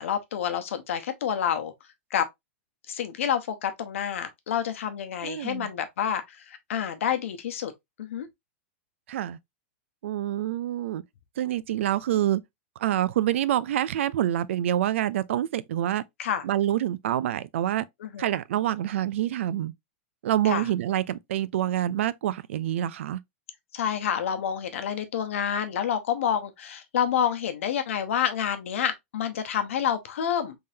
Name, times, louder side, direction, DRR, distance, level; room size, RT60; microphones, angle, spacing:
voice 1, 0.0-1.7 2.1-2.2 2.9-7.7 8.0-8.3 16.2-16.4 18.0-18.4 20.4-20.7 23.7-30.6, left 9 dB, 80° left, 0.9 m, -28 dB
voice 2, 5.2-5.7 9.1-9.4 10.0-11.0 11.4-12.4 12.8-16.0 16.4-17.9 18.2-19.7 20.2-23.2, right 12 dB, 70° right, 0.4 m, -26 dB
3.6 x 3.4 x 2.7 m
supercardioid pair, 175°, 7 cm